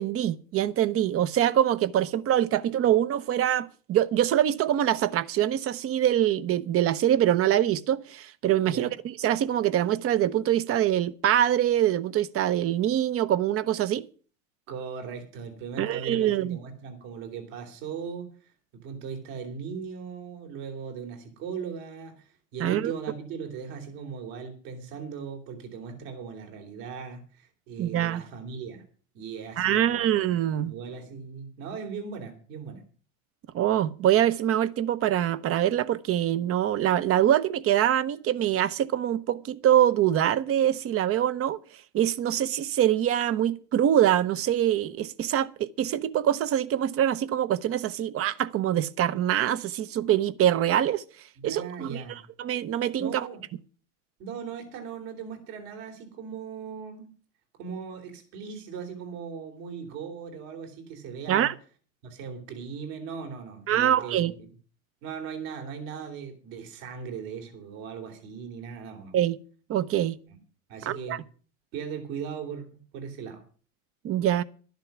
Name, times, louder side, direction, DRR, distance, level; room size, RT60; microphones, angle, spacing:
voice 1, 0.0-14.0 15.8-16.6 22.6-22.9 27.8-28.2 29.6-30.7 33.5-41.6 41.9-51.0 51.4-52.0 52.4-53.3 61.3-61.5 63.7-64.3 69.1-69.4 69.7-70.2 70.9-71.2 74.0-74.4, right 11 dB, 35° right, 0.8 m, -24 dB
voice 2, 14.7-28.8 29.1-30.2 30.6-32.8 51.4-52.2 53.0-53.4 54.2-57.1 57.6-61.5 62.0-64.4 65.0-69.2 70.7-71.2 71.7-73.4, right 6 dB, 65° right, 3.4 m, -38 dB
12.0 x 10.5 x 6.1 m
hypercardioid pair, 105°, 41 cm